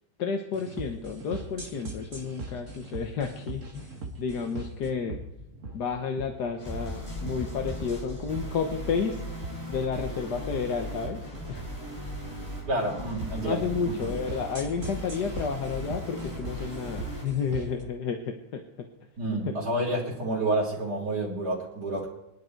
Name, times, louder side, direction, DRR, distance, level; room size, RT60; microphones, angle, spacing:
voice 1, 0.2-5.2 5.7-9.3 9.7-11.6 12.9-13.0 13.4-18.9, left 6 dB, 70° left, 4 dB, 1.7 m, -31 dB
sound 1, 0.5-17.8, right 2 dB, 45° right, 2.2 m, -41 dB
sound 2, 6.6-17.2, equal, 15° left, 6.2 m, -38 dB
voice 2, 12.7-13.9 19.2-22.1, right 1 dB, 65° right, -8 dB, 3.9 m, -29 dB
23.5 x 11.0 x 4.6 m, 0.91 s
omnidirectional pair, 1.9 m